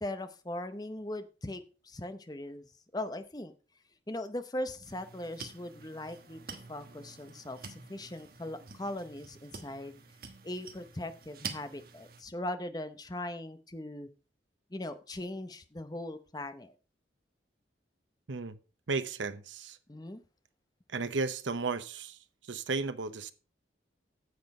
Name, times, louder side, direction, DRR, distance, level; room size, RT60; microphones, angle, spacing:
voice 1, 0.0-3.5 4.1-10.0 10.4-14.1 14.7-16.7 19.9-20.2, left 1 dB, 20° left, 0.8 m, -40 dB
sound 1, 4.8-12.2, right 5 dB, 50° right, 1.3 m, -47 dB
voice 2, 18.9-19.8 20.9-22.2 22.5-23.3, right 4 dB, 90° right, 0.8 m, -34 dB
9.5 x 6.9 x 5.3 m
head